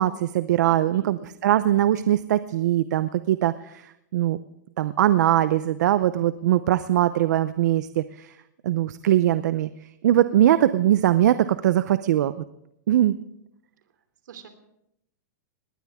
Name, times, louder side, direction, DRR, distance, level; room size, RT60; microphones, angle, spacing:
voice 1, 0.0-4.4 4.8-8.3 8.6-9.7 10.0-12.4 12.9-13.2, right 12 dB, 70° right, 13 dB, 0.7 m, -21 dB
voice 2, 0.6-1.1 14.2-14.5, right 7 dB, 85° right, 8 dB, 3.0 m, -44 dB
20.0 x 19.5 x 3.6 m, 0.79 s
supercardioid pair, 160°, 10 cm